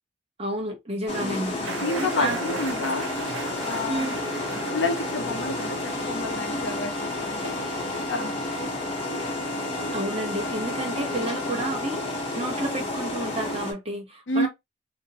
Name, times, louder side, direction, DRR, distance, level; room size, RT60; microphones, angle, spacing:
voice 1, 0.4-2.4 2.7-2.9 3.9-4.1 9.9-14.5, right 1 dB, 30° right, 0.8 m, -31 dB
sound 1, 1.1-13.7, left 2 dB, 35° left, 0.9 m, -31 dB
voice 2, 1.2-3.1 3.6-4.2 4.5-7.6 8.1-8.6 14.3-14.5, left 2 dB, 70° left, 0.5 m, -30 dB
sound 2, 1.6-13.1, left 5 dB, ahead, 0.9 m, -41 dB
sound 3, 1.6-7.3, right 6 dB, 90° right, 0.4 m, -39 dB
2.5 x 2.1 x 2.7 m
head